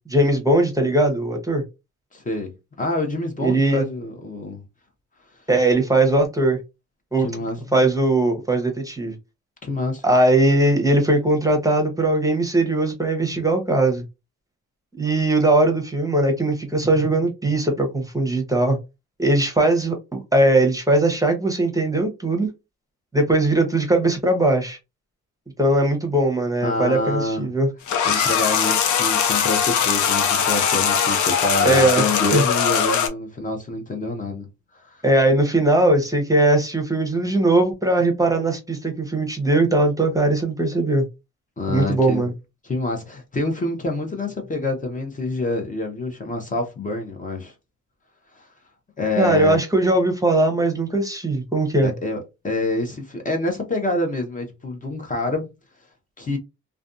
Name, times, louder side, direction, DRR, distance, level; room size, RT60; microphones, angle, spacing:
voice 1, 0.1-1.6 3.4-3.8 5.5-6.6 7.1-7.3 7.7-9.1 10.0-14.0 14.9-18.8 19.2-22.5 23.1-24.8 25.6-27.7 31.6-32.0 32.3-32.5 35.0-41.1 41.7-42.3 49.2-51.9, right 2 dB, 10° right, 0.8 m, -19 dB
voice 2, 2.1-2.5 2.8-4.6 7.2-7.6 9.6-10.0 26.6-27.5 28.0-34.4 34.7-35.0 41.6-42.2 42.6-47.5 48.3-48.5 49.0-49.6 51.8-55.5 56.2-56.4, left 2 dB, 25° left, 0.7 m, -27 dB
sound 1, 27.9-33.1, left 7 dB, 75° left, 0.7 m, -20 dB
2.5 x 2.2 x 2.5 m
cardioid pair, 90°, 30 cm